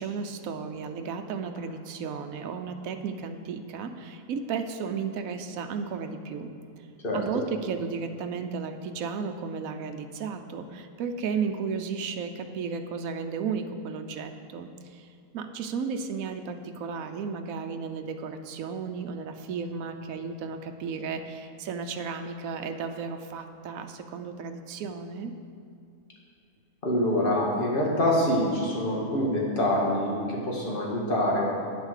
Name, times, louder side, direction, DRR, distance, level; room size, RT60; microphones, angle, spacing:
voice 1, 0.0-6.5 7.1-15.1 15.3-25.3, right 5 dB, 75° right, 6 dB, 1.1 m, -34 dB
voice 2, 26.8-31.5, left 1 dB, 40° left, -4 dB, 2.1 m, -25 dB
8.9 x 8.3 x 6.5 m, 2.5 s
omnidirectional pair, 1.5 m